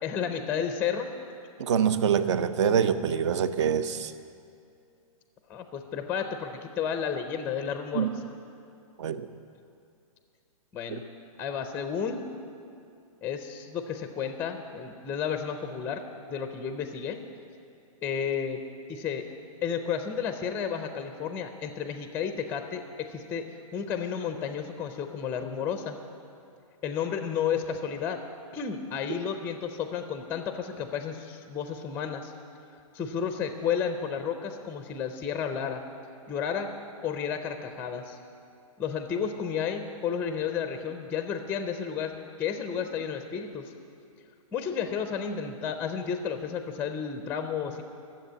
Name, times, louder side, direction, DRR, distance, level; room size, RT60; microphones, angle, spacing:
voice 1, 0.0-1.1 5.5-8.1 10.7-11.0 11.4-12.3 13.2-16.0 16.3-17.2 18.0-18.6 18.9-19.3 19.6-23.4 23.7-26.0 26.8-28.2 28.5-32.3 32.9-35.8 36.3-36.7 37.0-38.2 38.8-42.1 42.4-43.7 44.5-47.8, left 7 dB, 10° left, 7 dB, 0.5 m, -32 dB
voice 2, 1.6-4.1 7.9-8.2 9.0-9.3, right 7 dB, 55° right, 13 dB, 0.7 m, -25 dB
12.5 x 7.6 x 8.0 m, 2.5 s
hypercardioid pair, 150°, 18 cm